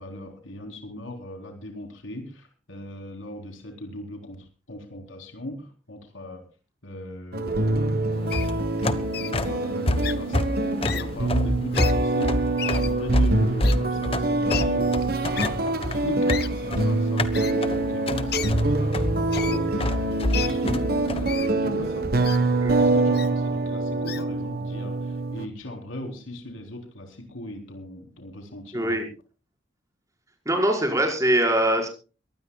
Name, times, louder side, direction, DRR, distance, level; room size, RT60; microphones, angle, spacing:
voice 1, 0.0-6.5 6.8-8.3 9.2-29.1, left 1 dB, 90° left, 3 dB, 4.0 m, -38 dB
sound 1, 7.3-25.5, right 2 dB, 50° right, 1.3 m, -25 dB
sound 2, 8.2-21.3, left 1 dB, 30° left, 1.3 m, -27 dB
Wild animals, 8.3-8.5 9.1-9.3 10.0-10.1 10.8-11.0 11.7-11.9 12.6-12.9 13.6-13.7 14.5-14.6 15.3-15.5 16.3-16.5 17.3-17.5 18.3-18.5 19.3-19.6 20.3-20.5 21.3-21.5 22.2-22.4 23.1-23.3 24.1-24.2, left 9 dB, 55° left, 1.1 m, -32 dB
voice 2, 28.7-29.1 30.5-31.9, right 1 dB, 15° right, 1 dB, 5.3 m, -23 dB
23.0 x 19.0 x 2.4 m, 0.35 s
head